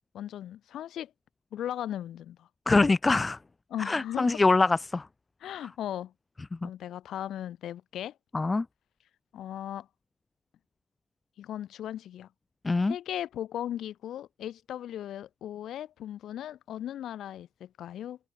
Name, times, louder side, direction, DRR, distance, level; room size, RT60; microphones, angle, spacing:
voice 1, 0.1-1.1 1.5-2.5 3.7-4.4 5.4-6.1 6.6-8.1 9.3-9.9 11.4-12.3 12.8-18.2, left 11 dB, 80° left, 7.5 m, -37 dB
voice 2, 2.7-3.4 3.9-5.1 6.6-6.7 8.3-8.6 12.6-12.9, left 3 dB, 30° left, 0.3 m, -24 dB
supercardioid pair, 60°, 0 cm